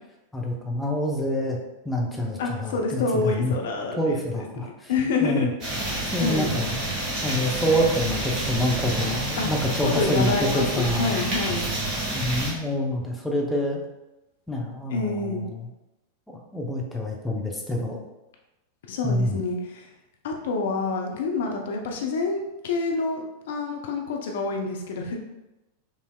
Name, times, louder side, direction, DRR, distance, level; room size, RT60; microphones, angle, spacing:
voice 1, 0.3-1.6 1.8-3.5 4.0-4.9 5.2-5.5 6.1-6.7 7.2-11.2 12.1-13.8 14.5-15.7 16.3-18.0 19.0-19.4, left 1 dB, 5° left, -1 dB, 0.7 m, -26 dB
voice 2, 2.4-4.2 4.6-5.5 6.2-6.5 9.4-9.5 9.8-11.7 14.9-15.4 18.9-19.9 20.2-25.2, left 3 dB, 55° left, 2 dB, 0.5 m, -27 dB
sound 1, 5.6-12.5, right 1 dB, 35° right, 1.4 m, -29 dB
5.3 x 3.3 x 2.2 m, 0.98 s
figure-of-eight pair, 90°, 0 cm